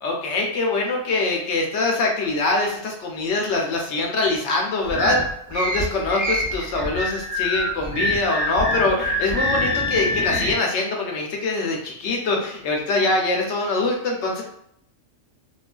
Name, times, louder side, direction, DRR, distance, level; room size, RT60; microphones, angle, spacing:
voice 1, 0.0-5.2 5.5-14.4, left 3 dB, 65° left, 0 dB, 0.8 m, -23 dB
sound 1, 4.9-10.5, left 1 dB, 25° right, 0.5 m, -25 dB
3.0 x 2.4 x 2.2 m, 0.71 s
omnidirectional pair, 1.4 m